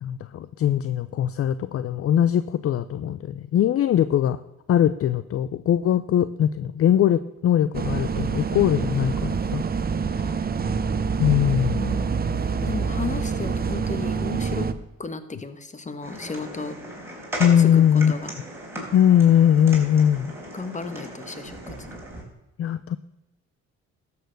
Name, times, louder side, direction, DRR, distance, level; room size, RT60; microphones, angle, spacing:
voice 1, 0.0-4.4 4.7-9.6 11.2-11.8 17.4-18.1 18.9-20.3 22.6-23.0, left 10 dB, 50° left, 15 dB, 0.5 m, -21 dB
sound 1, 7.7-14.7, right 5 dB, 30° right, 0.7 m, -26 dB
voice 2, 10.2-10.5 11.8-12.1 12.6-14.7 15.0-16.7 17.6-18.3 20.5-21.9, left 3 dB, 25° left, 11 dB, 1.2 m, -34 dB
sound 2, 16.0-22.2, right 1 dB, 10° right, 4.1 m, -37 dB
12.5 x 6.9 x 6.5 m, 0.93 s
cardioid pair, 90°, 30 cm